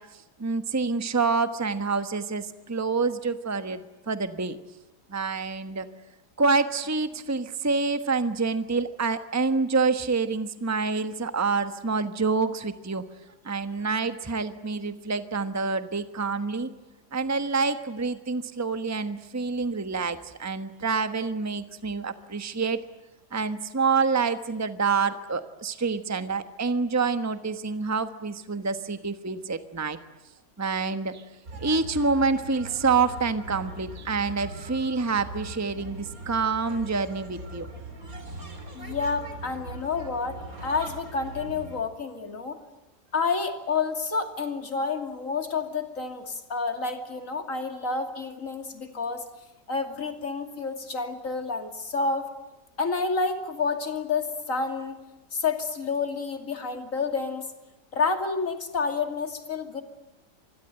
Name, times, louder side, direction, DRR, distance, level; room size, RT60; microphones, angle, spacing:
voice 1, 0.4-4.6 5.1-5.9 6.4-13.0 13.4-16.7 17.1-22.8 23.3-30.0 30.6-31.2 31.6-37.7, right 4 dB, 10° right, 10 dB, 1.1 m, -27 dB
sound 1, 31.4-41.8, right 2 dB, 60° right, 4.1 m, -40 dB
voice 2, 38.7-42.6 43.1-49.3 49.7-52.3 52.8-55.0 55.3-57.5 57.9-59.8, left 4 dB, 55° left, 6 dB, 3.1 m, -29 dB
26.5 x 21.5 x 9.0 m, 1.0 s
omnidirectional pair, 1.7 m